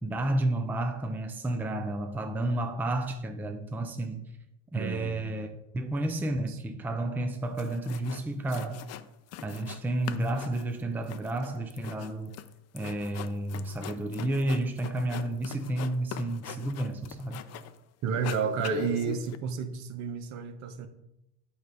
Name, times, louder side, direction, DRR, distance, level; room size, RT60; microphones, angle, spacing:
voice 1, 0.0-4.2 4.7-5.5 5.7-8.9 9.4-12.4 12.7-17.4, right 1 dB, 5° right, 0.5 m, -31 dB
voice 2, 4.7-5.3 6.5-6.6 18.0-20.9, right 7 dB, 60° right, 0.9 m, -31 dB
sound 1, 7.3-7.4 7.6-8.2 8.5-9.8 10.1-17.8 18.1-19.4, left 10 dB, 50° left, 0.5 m, -41 dB
8.7 x 5.0 x 4.0 m
cardioid pair, 145°, 32 cm